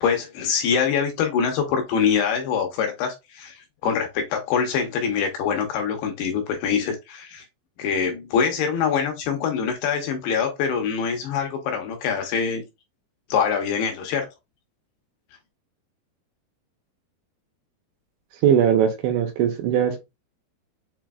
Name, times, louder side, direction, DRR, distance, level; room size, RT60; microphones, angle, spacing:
voice 1, 0.0-7.4 7.8-12.6 13.3-14.3, left 6 dB, 75° left, 2.6 m, -24 dB
voice 2, 18.4-20.0, right 9 dB, 80° right, 3.3 m, -20 dB
7.5 x 3.1 x 2.3 m
omnidirectional pair, 5.2 m